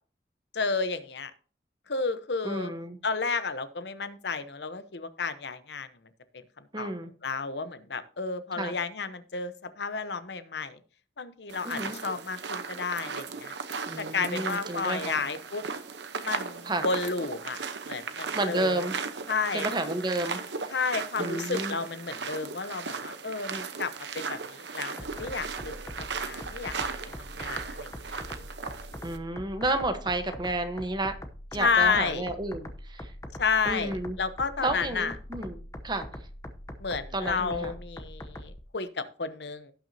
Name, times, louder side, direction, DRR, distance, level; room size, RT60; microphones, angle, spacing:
voice 1, 0.5-1.3 1.9-2.7 3.0-5.9 6.8-6.9 7.2-10.8 11.2-13.5 14.0-15.6 16.2-17.6 17.9-18.9 19.3-19.7 20.7-26.8 27.1-28.2 31.6-32.3 33.4-35.1 36.8-39.7, left 4 dB, 70° left, 12 dB, 0.9 m, -31 dB
voice 2, 2.4-3.0 6.7-7.1 8.6-8.8 11.6-12.0 13.9-15.2 16.6-16.9 18.3-18.9 19.5-20.7 21.2-21.8 23.5-23.6 29.0-31.1 31.5-33.1 33.6-34.2 34.6-35.6 35.8-36.1 37.1-37.7, right 2 dB, 25° right, 8 dB, 1.0 m, -31 dB
sound 1, 11.5-29.2, right 5 dB, 75° right, 0.9 m, -37 dB
sound 2, 25.0-38.6, left 1 dB, 20° left, 0.8 m, -43 dB
17.5 x 6.1 x 2.8 m, 0.40 s
head